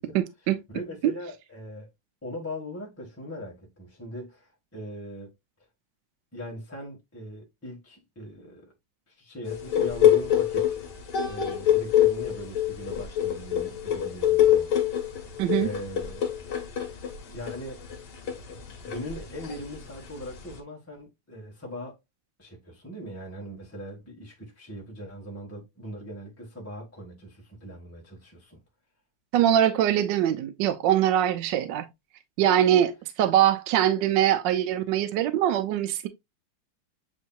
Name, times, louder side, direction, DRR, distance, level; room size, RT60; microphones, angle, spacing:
voice 1, 0.1-0.6 1.0-1.1 15.4-15.7 29.3-31.9 32.4-36.1, right 11 dB, 75° right, 1.1 m, -23 dB
voice 2, 0.7-1.9 2.2-5.3 6.3-8.7 9.1-10.8 11.2-14.7 15.5-16.3 16.8-17.8 18.5-22.0 22.4-28.6, equal, 10° left, 0.8 m, -40 dB
sound 1, 9.5-20.6, left 10 dB, 55° left, 1.6 m, -25 dB
8.1 x 2.8 x 2.2 m
omnidirectional pair, 2.4 m